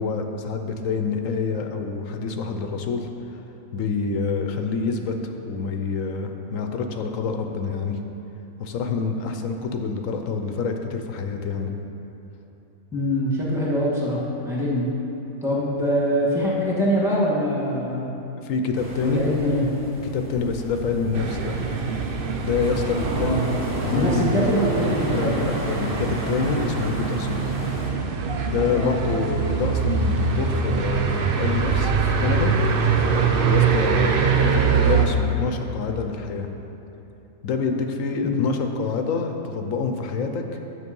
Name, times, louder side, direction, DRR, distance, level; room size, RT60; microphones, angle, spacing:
voice 1, 0.0-3.4 3.7-8.0 8.6-11.7 18.3-19.3 20.1-21.6 22.4-23.3 23.8-24.4 25.1-27.4 28.4-32.5 33.5-36.5 37.4-40.4, left 5 dB, 75° left, 5 dB, 1.1 m, -27 dB
voice 2, 12.9-14.9 15.4-18.1 19.0-19.7 23.2-23.4 23.9-25.3 28.7-28.9 38.2-38.3, equal, ahead, -7 dB, 2.0 m, -23 dB
sound 1, 18.7-27.9, equal, 25° right, 2.2 m, -33 dB
sound 2, 21.1-35.1, right 5 dB, 50° right, 0.7 m, -23 dB
9.6 x 7.2 x 5.3 m, 3.0 s
omnidirectional pair, 1.4 m